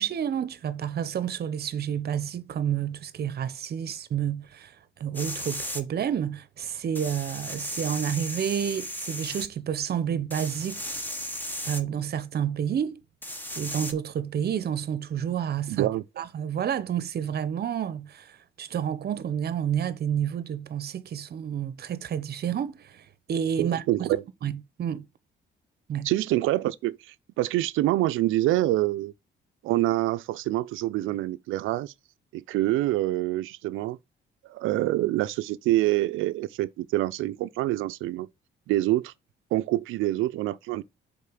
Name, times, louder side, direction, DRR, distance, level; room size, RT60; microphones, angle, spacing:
voice 1, 0.0-4.7 5.0-10.9 11.6-13.0 13.6-15.9 16.2-24.1 24.4-25.1 25.9-26.1, right 9 dB, 55° right, 0.8 m, -30 dB
sound 1, 5.1-5.8 7.0-9.5 10.3-11.8 13.2-13.9, equal, 10° left, 1.2 m, -35 dB
voice 2, 15.7-16.0 23.6-24.2 26.0-27.0 27.4-29.1 29.6-31.9 32.3-34.0 34.5-38.3 38.7-39.1 39.5-40.8, right 16 dB, 90° right, 0.5 m, -26 dB
5.6 x 4.3 x 6.3 m
cardioid pair, 90°, 20 cm